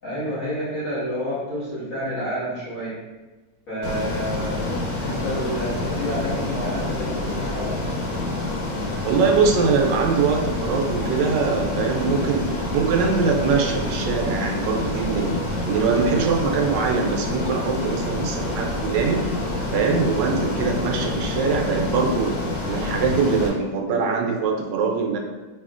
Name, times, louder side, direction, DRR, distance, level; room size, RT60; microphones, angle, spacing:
voice 1, 0.0-3.0 3.7-4.7 5.0-7.8, equal, 50° left, -11 dB, 2.1 m, -29 dB
Ocean, 3.8-23.5, left 2 dB, 85° left, 1.6 m, -27 dB
voice 2, 9.0-19.2 19.7-22.4 22.7-25.2, right 5 dB, 80° right, 1 dB, 1.2 m, -22 dB
4.8 x 2.7 x 2.5 m, 1.2 s
omnidirectional pair, 1.9 m